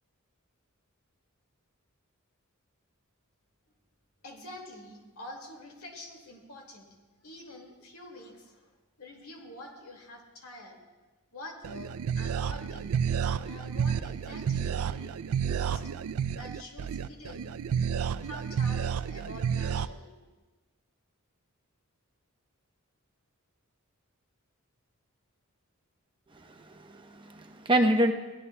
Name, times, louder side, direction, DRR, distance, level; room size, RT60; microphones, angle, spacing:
voice 1, 4.2-6.9 7.2-8.7 9.0-10.8 11.3-12.9 13.4-15.9 16.3-17.5 18.2-20.2, left 1 dB, 75° left, 2 dB, 2.2 m, -47 dB
sound 1, 11.6-19.9, right 7 dB, 80° right, 0.4 m, -31 dB
voice 2, 26.3-28.1, right 1 dB, 25° right, 4 dB, 0.9 m, -27 dB
21.5 x 16.5 x 2.3 m, 1.2 s
head